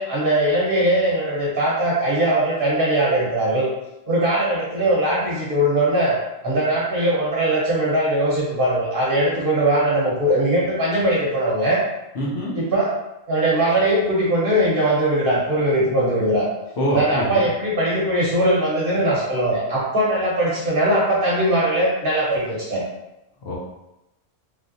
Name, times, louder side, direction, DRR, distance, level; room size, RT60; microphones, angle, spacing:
voice 1, 0.0-3.7 4.1-6.2 6.4-11.8 12.5-12.9 13.3-16.4 16.9-22.8, right 1 dB, 50° right, -6 dB, 1.0 m, -20 dB
voice 2, 12.1-12.5 16.8-17.4 23.4-23.6, equal, 60° left, -5 dB, 1.0 m, -24 dB
3.4 x 2.8 x 2.6 m, 0.93 s
omnidirectional pair, 1.3 m